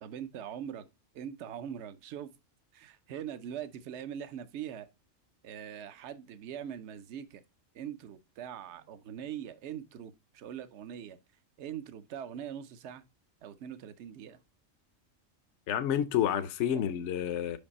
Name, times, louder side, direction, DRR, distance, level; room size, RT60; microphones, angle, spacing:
voice 1, 0.0-0.9 1.1-2.3 2.7-4.9 5.4-7.4 7.7-11.2 11.6-13.0 13.4-14.4, right 9 dB, 65° right, 0.9 m, -42 dB
voice 2, 15.7-17.6, left 10 dB, 65° left, 0.9 m, -29 dB
5.7 x 5.2 x 4.1 m
omnidirectional pair, 1.4 m